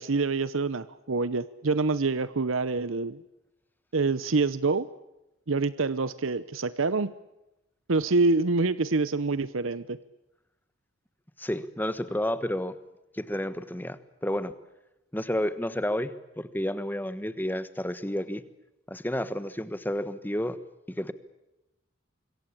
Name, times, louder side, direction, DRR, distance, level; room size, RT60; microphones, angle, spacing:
voice 1, 0.0-3.2 3.9-4.9 5.5-7.1 7.9-10.0, right 3 dB, 85° right, 16 dB, 0.9 m, -26 dB
voice 2, 11.4-12.7 13.1-14.5 15.1-18.4 18.9-20.6 20.9-21.1, left 1 dB, 10° left, 13 dB, 1.3 m, -31 dB
25.5 x 22.5 x 8.7 m, 0.92 s
head